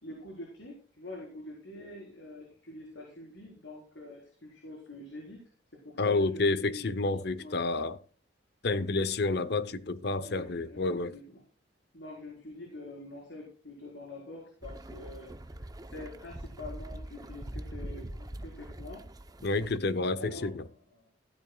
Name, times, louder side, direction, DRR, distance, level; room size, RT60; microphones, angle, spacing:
voice 1, 0.0-5.4 5.9-7.0 7.4-7.6 8.7-8.8 9.5-9.6 10.2-11.4 11.9-19.0 20.2-21.1, left 2 dB, 80° left, 4.5 m, -46 dB
voice 2, 6.0-8.0 8.6-11.2 19.4-20.6, left 3 dB, 60° left, 0.8 m, -29 dB
sound 1, 14.6-19.8, right 1 dB, 20° right, 0.7 m, -43 dB
15.5 x 12.5 x 2.3 m
head